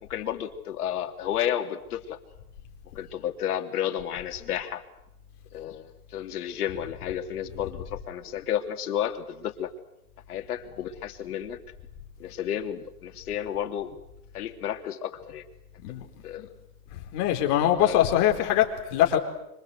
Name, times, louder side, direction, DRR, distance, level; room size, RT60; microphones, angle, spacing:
voice 1, 0.0-2.2 2.9-4.8 5.5-9.7 10.3-11.6 12.2-14.0 14.3-15.4 15.9-16.5 17.6-18.0, left 10 dB, 75° left, 5 dB, 3.3 m, -32 dB
voice 2, 17.1-19.2, left 11 dB, 40° left, 3 dB, 4.5 m, -23 dB
26.0 x 25.5 x 8.2 m, 0.83 s
hypercardioid pair, 140°, 46 cm